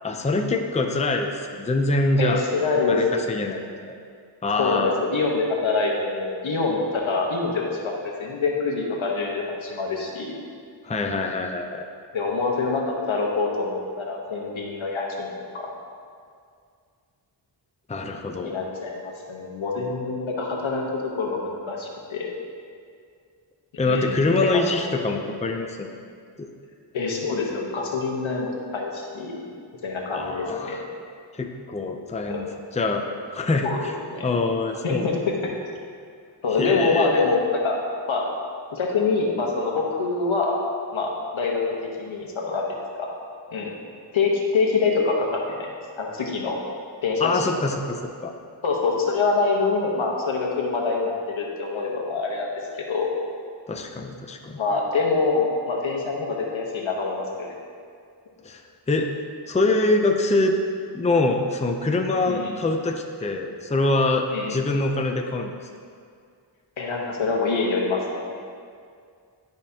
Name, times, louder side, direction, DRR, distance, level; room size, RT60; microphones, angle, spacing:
voice 1, 0.0-2.4 2.9-3.6 4.4-4.9 10.8-11.8 17.9-18.5 23.8-25.9 26.4-26.5 30.1-30.8 31.3-33.0 33.3-33.7 34.2-35.1 36.6-37.3 47.2-48.3 53.7-54.6 58.4-58.6 58.9-59.1 59.5-60.6 60.9-65.5, left 2 dB, 15° left, 3 dB, 0.5 m, -24 dB
voice 2, 2.2-3.7 4.6-10.4 12.1-15.7 18.4-22.3 23.8-24.2 24.5-24.7 26.9-29.4 29.8-30.8 32.3-32.4 33.6-34.3 34.8-35.4 36.4-37.8 38.1-38.2 38.7-40.6 40.9-41.6 42.0-42.6 43.0-43.1 43.5-43.7 44.1-45.7 45.9-46.6 47.0-47.3 48.6-52.5 52.9-53.1 54.6-57.5 62.2-62.6 64.3-64.6 66.8-68.3, left 4 dB, 85° left, -1 dB, 1.2 m, -25 dB
11.5 x 5.2 x 2.8 m, 2.2 s
wide cardioid pair, 80°, 46 cm